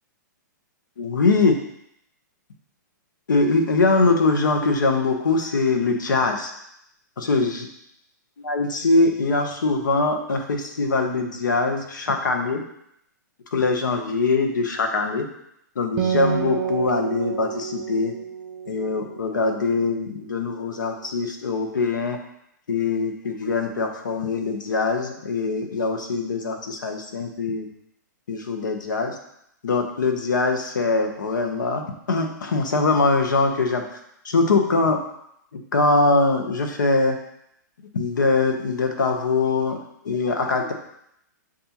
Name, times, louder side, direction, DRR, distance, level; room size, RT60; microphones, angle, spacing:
voice 1, 1.0-1.5 3.3-6.5 7.2-7.7 8.4-12.6 13.5-15.3 15.8-18.1 18.7-22.2 22.7-27.7 28.3-29.2 29.6-33.8 34.2-35.0 35.7-37.2 37.9-40.7, left 3 dB, 80° left, 4 dB, 0.8 m, -22 dB
Acoustic guitar, 16.0-19.7, right 7 dB, 30° right, 0.3 m, -29 dB
6.6 x 2.5 x 2.8 m, 0.75 s
hypercardioid pair, 130°, 10 cm